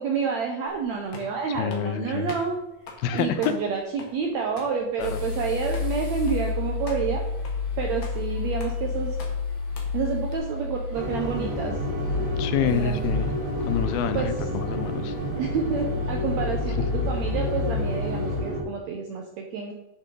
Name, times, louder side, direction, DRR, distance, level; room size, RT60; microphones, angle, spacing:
voice 1, 0.0-2.6 3.1-7.2 7.8-9.2 9.9-11.7 12.6-13.0 14.1-14.3 15.4-19.7, right 6 dB, 75° right, 1 dB, 1.6 m, -29 dB
sound 1, 0.7-10.4, left 3 dB, 50° left, 1.6 m, -46 dB
voice 2, 1.6-2.3 3.0-3.5 5.0-5.1 12.4-13.3 13.7-15.1, left 8 dB, 85° left, 9 dB, 2.7 m, -27 dB
sound 2, 5.0-18.4, left 4 dB, 15° left, 3.1 m, -30 dB
sound 3, 10.9-18.6, equal, 25° right, 3.0 m, -31 dB
11.0 x 6.7 x 3.8 m, 1.0 s
omnidirectional pair, 4.3 m